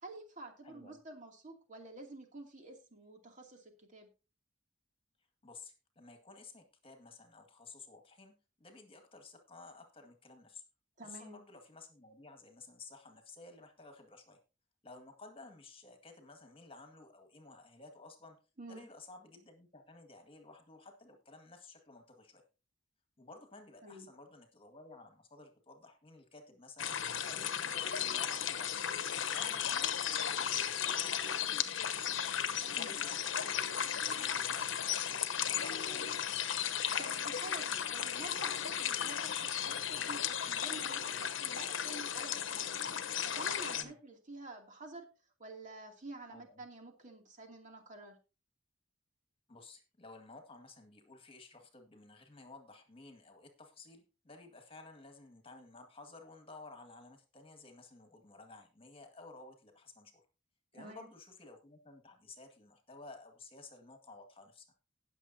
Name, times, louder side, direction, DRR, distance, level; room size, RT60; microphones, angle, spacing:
voice 1, 0.0-4.1 11.0-11.4 18.6-18.8 23.8-24.1 32.8-33.0 37.0-42.8 43.2-45.1 45.4-48.2 60.7-61.1, right 2 dB, 40° right, 2 dB, 2.6 m, -50 dB
voice 2, 0.6-1.0 5.4-10.6 11.0-14.4 14.8-18.4 18.7-22.4 23.2-26.9 27.2-28.9 29.3-32.3 32.7-35.2 35.5-36.3 43.8-44.0 46.3-46.6 49.5-60.2 60.7-64.7, left 3 dB, 30° left, 5 dB, 2.0 m, -54 dB
sound 1, 26.8-43.8, left 9 dB, 80° left, 1.0 m, -35 dB
19.5 x 6.9 x 2.8 m, 0.31 s
head